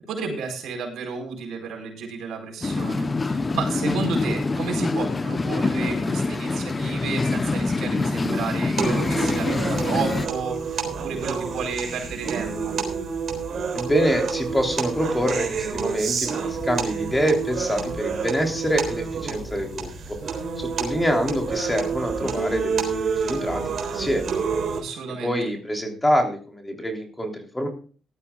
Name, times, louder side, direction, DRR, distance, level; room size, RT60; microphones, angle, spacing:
voice 1, 0.1-12.7 24.7-25.5, right 5 dB, 75° right, 1 dB, 4.7 m, -32 dB
sound 1, 2.6-10.3, left 3 dB, 25° left, 0.8 m, -25 dB
sound 2, 8.8-24.8, right 5 dB, 55° right, 3.7 m, -28 dB
voice 2, 13.7-20.2 20.6-24.3 25.2-27.7, equal, 10° left, 3 dB, 3.3 m, -25 dB
18.5 x 12.5 x 2.4 m, 0.39 s
cardioid pair, 90°, 0 cm